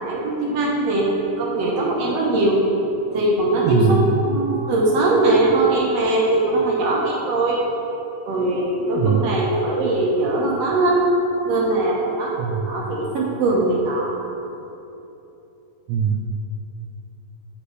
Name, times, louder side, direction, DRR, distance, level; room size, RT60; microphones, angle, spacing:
voice 1, 0.0-2.6 3.1-7.6 8.3-11.1 11.5-14.2, right 2 dB, 65° right, -3 dB, 1.8 m, -21 dB
voice 2, 3.6-4.0 9.0-9.2 12.4-12.6 15.9-16.3, right 7 dB, 80° right, 0 dB, 1.6 m, -20 dB
8.5 x 8.1 x 3.2 m, 2.9 s
omnidirectional pair, 3.7 m